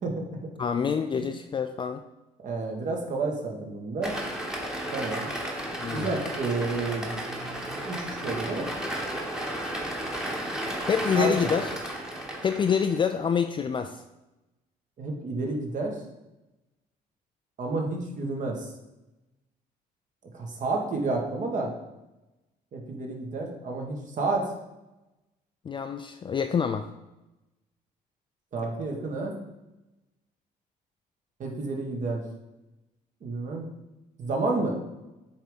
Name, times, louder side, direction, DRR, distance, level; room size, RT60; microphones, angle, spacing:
voice 1, 0.6-2.0 5.8-6.1 10.9-11.7 12.4-14.0 25.6-26.9, left 7 dB, 30° left, 7 dB, 0.4 m, -27 dB
voice 2, 2.4-4.2 4.9-5.3 5.9-8.7 11.1-11.3 15.0-16.0 17.6-18.7 20.3-21.7 22.7-24.5 28.5-29.4 31.4-32.2 33.2-33.7 34.2-34.8, right 3 dB, 50° right, 1 dB, 1.6 m, -30 dB
sound 1, 4.0-13.1, right 1 dB, 5° right, 1.2 m, -33 dB
7.4 x 3.6 x 5.2 m, 0.98 s
cardioid pair, 110°, 17 cm